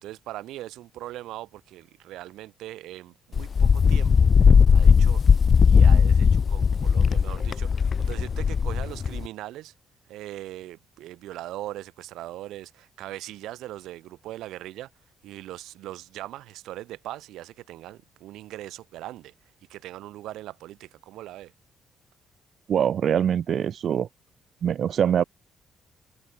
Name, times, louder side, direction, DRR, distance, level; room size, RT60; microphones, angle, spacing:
voice 1, 0.0-4.3 4.7-5.2 5.6-9.7 10.1-14.9 15.2-19.3 19.7-21.5, right 15 dB, 90° right, 2.5 m, -40 dB
Wind, 3.3-9.3, left 6 dB, 45° left, 0.7 m, -18 dB
voice 2, 22.7-24.1 24.6-25.2, right 8 dB, 60° right, 1.5 m, -23 dB
cardioid pair, 90°, 0 cm